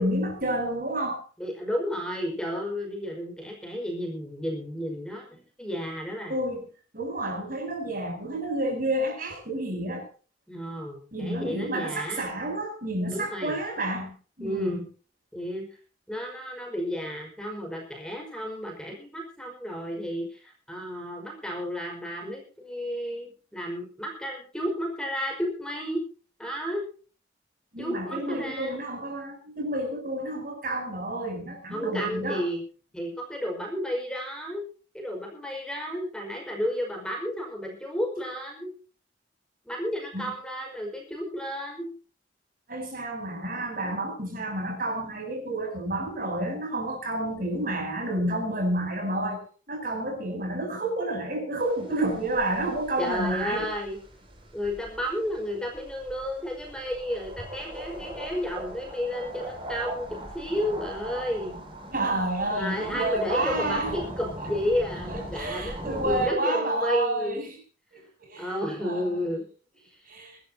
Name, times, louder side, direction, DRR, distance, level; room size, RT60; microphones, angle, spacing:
voice 1, 0.0-1.2 6.3-6.7 6.9-10.1 11.1-14.8 27.7-32.4 40.1-40.3 42.7-49.4 49.7-53.7 61.9-63.9 65.1-67.5 67.9-69.2 70.1-70.4, right 1 dB, 50° right, 3 dB, 7.9 m, -30 dB
voice 2, 1.4-6.3 10.5-12.3 13.1-13.6 14.4-14.8 15.3-15.7 16.1-26.0 26.4-26.9 27.8-28.8 31.7-32.6 32.9-34.6 34.9-38.7 39.6-41.9 53.0-54.0 54.5-61.6 62.5-67.4 68.4-69.4 69.8-70.1, equal, 5° left, 0 dB, 4.9 m, -32 dB
sound 1, 51.6-66.3, right 1 dB, 30° right, 5.3 m, -40 dB
24.5 x 13.0 x 2.8 m, 0.39 s
head